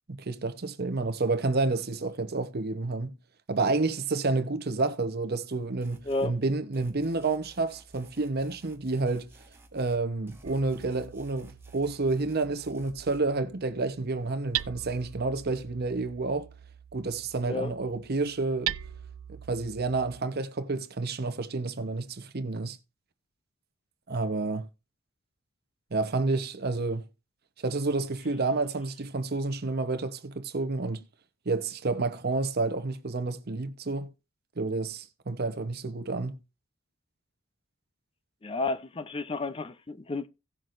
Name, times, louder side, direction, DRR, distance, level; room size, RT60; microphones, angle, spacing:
voice 1, 0.1-3.2 3.5-9.3 9.7-16.5 16.9-18.8 19.3-22.8 24.1-24.7 25.9-27.1 27.6-31.0 31.5-34.1 34.6-36.4, right 3 dB, 50° right, 0.8 m, -29 dB
sound 1, 5.8-6.3 6.7-10.0 10.3-13.2, right 1 dB, 10° right, 1.4 m, -55 dB
voice 2, 6.1-6.4 17.5-17.7 38.4-40.3, left 3 dB, 25° left, 0.5 m, -31 dB
Hammer, 10.4-20.2, right 12 dB, 70° right, 0.4 m, -41 dB
17.0 x 6.1 x 2.5 m
head